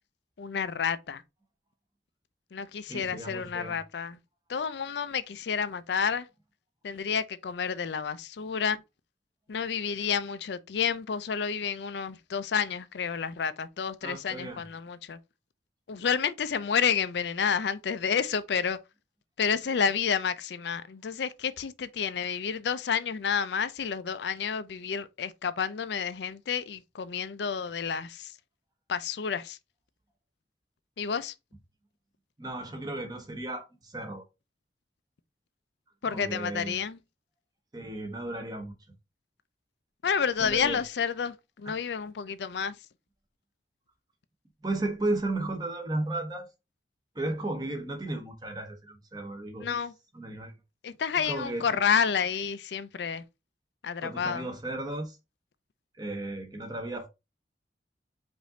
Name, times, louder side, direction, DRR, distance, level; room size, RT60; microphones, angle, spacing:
voice 1, 0.4-1.2 2.5-4.2 4.5-6.3 6.8-8.8 9.5-15.2 15.9-18.8 19.4-28.3 28.9-29.6 31.0-31.3 36.0-37.0 40.0-42.7 49.6-49.9 50.8-53.2 53.8-54.4, left 6 dB, 75° left, 0.4 m, -30 dB
voice 2, 2.9-3.8 14.0-14.6 32.4-34.2 36.0-36.8 37.7-38.7 40.4-40.8 44.6-46.5 47.1-49.8 50.1-50.5 51.2-51.7 54.0-55.2 56.0-57.1, right 2 dB, 20° right, 0.9 m, -34 dB
5.1 x 2.6 x 3.8 m
head